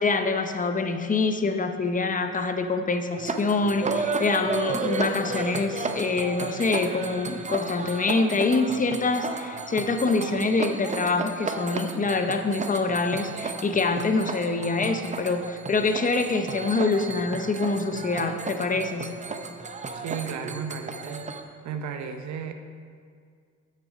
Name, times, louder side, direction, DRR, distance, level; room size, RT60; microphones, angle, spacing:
voice 1, 0.0-19.1, left 3 dB, 25° left, 7 dB, 0.7 m, -25 dB
sound 1, 3.2-21.4, right 4 dB, 25° right, 0.6 m, -33 dB
voice 2, 19.9-21.3 21.6-22.5, right 7 dB, 70° right, 7 dB, 0.8 m, -34 dB
8.3 x 6.7 x 5.0 m, 2.1 s
cardioid pair, 90°, 30 cm